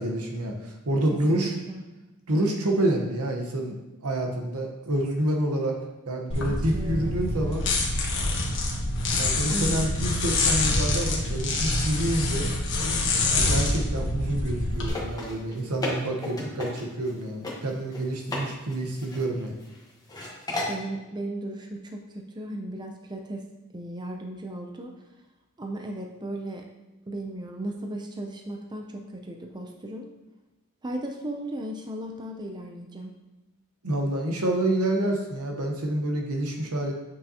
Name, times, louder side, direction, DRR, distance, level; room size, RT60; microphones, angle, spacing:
voice 1, 0.0-1.5 2.3-5.8 6.1-7.7 9.2-12.5 13.3-19.5 33.8-36.9, right 1 dB, 75° right, 2 dB, 1.1 m, -28 dB
voice 2, 1.3-1.8 6.5-7.2 9.5-9.8 20.7-23.4 23.7-24.9 25.6-26.7 27.1-30.1 30.8-33.1, right 1 dB, 20° right, 2 dB, 0.5 m, -36 dB
sound 1, 6.3-14.9, left 2 dB, 55° left, 1.3 m, -26 dB
sound 2, 14.8-17.1 17.4-17.5 17.9-18.4 18.7-19.7 20.1-20.8, left 2 dB, 15° left, 1.3 m, -33 dB
8.2 x 5.3 x 2.9 m, 1.0 s
head